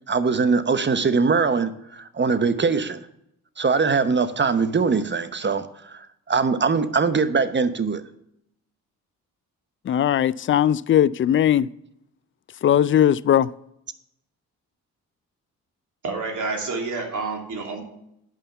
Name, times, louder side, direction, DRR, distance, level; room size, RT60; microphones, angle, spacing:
voice 1, 0.1-3.0 3.6-8.0, right 4 dB, 30° right, 0.9 m, -22 dB
voice 2, 9.9-11.7 12.6-13.5, left 10 dB, 35° left, 0.4 m, -19 dB
voice 3, 16.0-17.8, right 3 dB, 50° right, 2.8 m, -28 dB
9.1 x 5.5 x 6.8 m
supercardioid pair, 55°, 38 cm